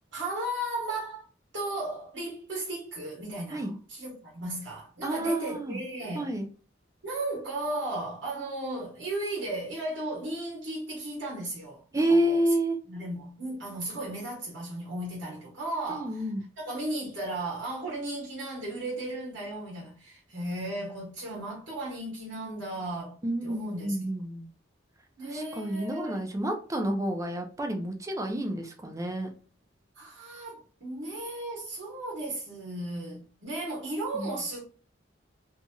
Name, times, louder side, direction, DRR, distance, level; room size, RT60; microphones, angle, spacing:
voice 1, 0.1-1.3 1.5-6.4 7.0-12.4 12.8-24.0 25.2-26.2 30.0-34.6, right 1 dB, 70° right, 1.1 m, -35 dB
voice 2, 5.0-5.8 6.2-6.5 11.9-12.8 15.9-16.4 23.2-24.5 25.2-29.3 34.1-34.3, right 1 dB, 15° right, 0.4 m, -29 dB
2.8 x 2.7 x 2.2 m
head